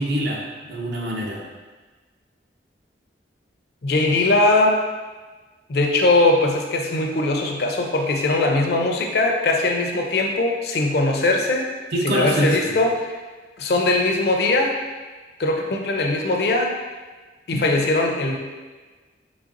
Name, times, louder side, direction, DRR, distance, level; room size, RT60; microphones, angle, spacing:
voice 1, 0.0-1.4 11.9-12.7, equal, 60° right, -2 dB, 0.6 m, -24 dB
voice 2, 3.8-4.8 5.7-11.7 12.0-13.2 13.6-14.8 15.4-16.7 17.5-18.4, left 2 dB, 60° left, 2 dB, 0.4 m, -20 dB
4.0 x 3.2 x 2.5 m, 1.3 s
head